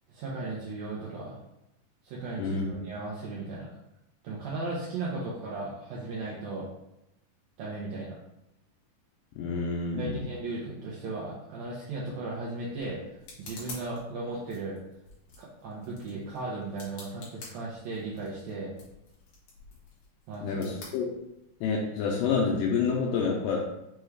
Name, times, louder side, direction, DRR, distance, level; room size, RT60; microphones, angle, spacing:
voice 1, 0.1-1.4 2.0-3.7 4.2-6.7 7.6-8.2 10.0-13.0 13.4-14.8 15.4-18.7 20.3-20.7, right 3 dB, 80° right, -5 dB, 1.6 m, -36 dB
voice 2, 9.4-10.2 20.4-21.1 21.6-23.6, left 5 dB, 85° left, -2 dB, 2.3 m, -28 dB
sound 1, 12.0-21.7, left 3 dB, 65° left, 2.2 m, -50 dB
5.7 x 2.3 x 3.2 m, 0.88 s
omnidirectional pair, 3.9 m